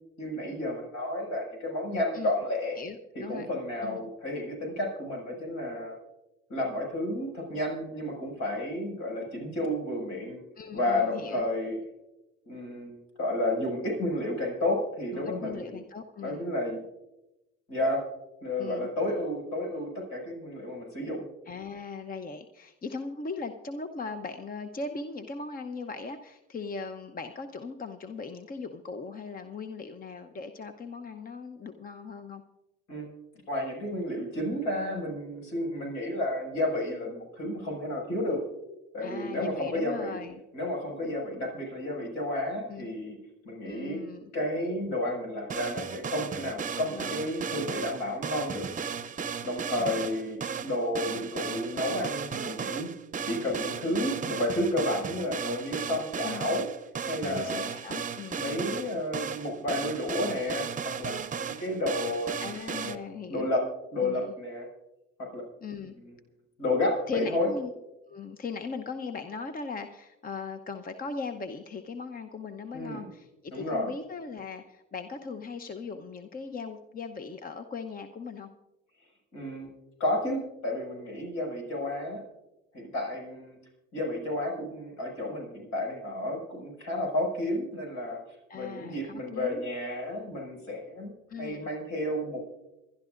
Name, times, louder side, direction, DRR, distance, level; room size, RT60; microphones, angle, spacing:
voice 1, 0.2-2.8 3.1-6.0 6.5-10.4 10.7-11.8 12.4-15.8 16.2-16.8 17.7-18.0 18.4-21.2 32.9-33.1 33.5-38.4 38.9-40.2 40.5-43.2 43.4-44.0 44.3-48.6 49.4-52.9 53.3-56.6 57.0-57.7 58.3-61.1 61.6-62.4 62.9-63.0 63.3-63.6 63.9-64.7 65.2-65.4 66.1-66.2 66.6-67.5 72.7-73.1 73.5-73.9 79.3-79.7 80.0-82.2 82.7-83.6 83.9-88.2 88.5-91.1 91.4-92.4, left 1 dB, 70° left, -1 dB, 6.3 m, -31 dB
voice 2, 2.8-3.5 3.8-4.0 10.6-11.5 15.1-16.5 18.6-18.9 21.5-32.4 39.0-40.4 42.7-42.9 43.6-44.3 46.9-47.3 49.8-50.0 56.2-56.5 57.2-58.4 62.4-63.5 64.0-64.3 65.6-65.9 67.1-67.7 68.1-78.5 88.5-89.7 91.3-91.7, left 4 dB, 30° left, 8 dB, 0.9 m, -39 dB
sound 1, 45.5-62.9, right 6 dB, 25° right, 0.8 m, -35 dB
27.0 x 12.0 x 2.6 m, 0.96 s
supercardioid pair, 75°, 30 cm